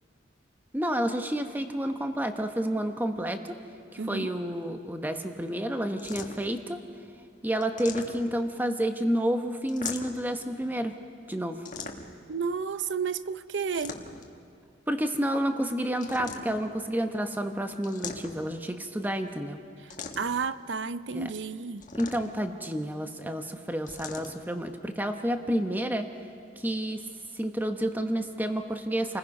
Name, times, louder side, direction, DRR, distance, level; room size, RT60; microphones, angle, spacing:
voice 1, 0.7-3.6 4.1-6.8 7.4-11.0 11.3-11.7 14.9-19.6 21.1-21.3 21.9-26.1 26.6-27.0 27.3-29.2, equal, 10° right, 6 dB, 1.0 m, -30 dB
voice 2, 4.0-4.3 12.3-14.0 20.2-21.8, right 5 dB, 70° right, 14 dB, 0.6 m, -31 dB
sound 1, 6.0-6.6 7.6-8.5 9.7-10.3 11.6-12.3 13.6-14.4 16.0-16.7 17.8-18.6 19.9-20.4 21.8-22.5 23.9-24.3, left 5 dB, 40° left, 1.4 m, -40 dB
29.5 x 20.0 x 5.4 m, 2.3 s
head